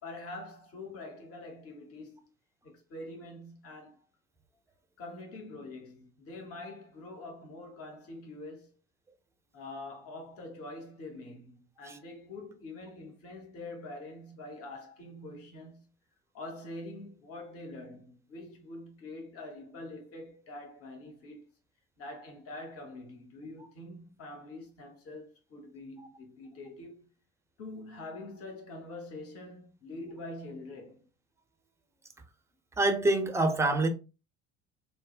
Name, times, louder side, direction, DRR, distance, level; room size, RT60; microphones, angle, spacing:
voice 1, 0.0-2.2 2.6-4.0 5.0-8.7 9.5-15.9 16.3-21.4 22.0-27.1 27.6-31.0, left 2 dB, 45° left, 1.1 m, -45 dB
voice 2, 32.8-33.9, right 2 dB, 10° right, 0.5 m, -26 dB
3.2 x 2.1 x 2.4 m
hypercardioid pair, 65°, 33 cm